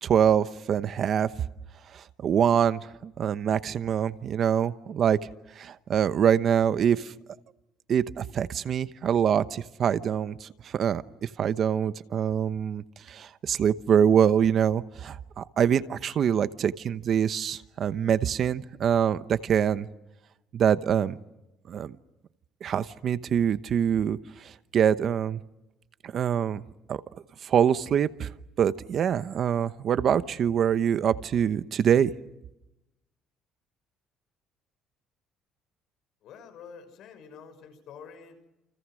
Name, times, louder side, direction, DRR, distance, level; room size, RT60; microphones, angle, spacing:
voice 1, 0.0-1.3 1.9-5.2 5.6-7.1 7.9-19.9 20.5-21.2 21.7-21.9 22.6-25.4 26.0-26.6 26.9-27.0 27.4-28.3 28.6-32.1, right 8 dB, 45° right, 13 dB, 1.0 m, -25 dB
voice 2, 36.2-38.5, left 6 dB, 60° left, 8 dB, 6.3 m, -47 dB
29.5 x 29.0 x 6.4 m, 0.93 s
cardioid pair, 140°, 0 cm